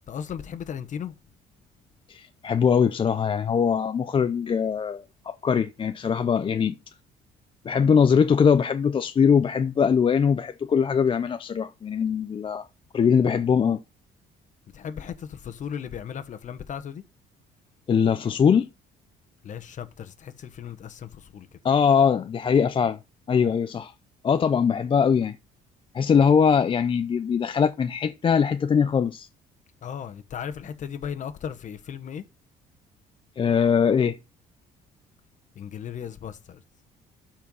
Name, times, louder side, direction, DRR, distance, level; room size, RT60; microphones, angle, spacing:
voice 1, 0.1-1.1 14.7-17.0 19.4-21.6 29.8-32.2 35.5-36.6, left 8 dB, 45° left, 1.2 m, -36 dB
voice 2, 2.1-6.8 7.6-12.7 12.9-13.8 17.9-18.7 21.6-23.0 23.3-23.9 24.2-25.4 25.9-29.3 33.4-34.2, left 6 dB, 30° left, 0.5 m, -22 dB
12.0 x 4.5 x 5.4 m
cardioid pair, 110°, 17 cm